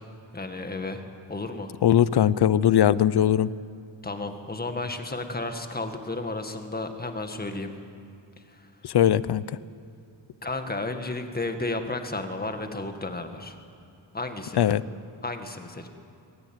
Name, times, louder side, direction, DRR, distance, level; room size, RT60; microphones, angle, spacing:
voice 1, 0.3-1.0 1.3-1.7 4.0-7.7 8.5-8.7 10.4-13.6 14.1-14.6 15.2-15.9, left 2 dB, 20° left, 6 dB, 1.9 m, -32 dB
voice 2, 1.8-3.5 8.8-9.4 14.6-14.8, left 10 dB, 55° left, 18 dB, 0.7 m, -20 dB
23.0 x 21.5 x 9.0 m, 2.5 s
wide cardioid pair, 135°, 47 cm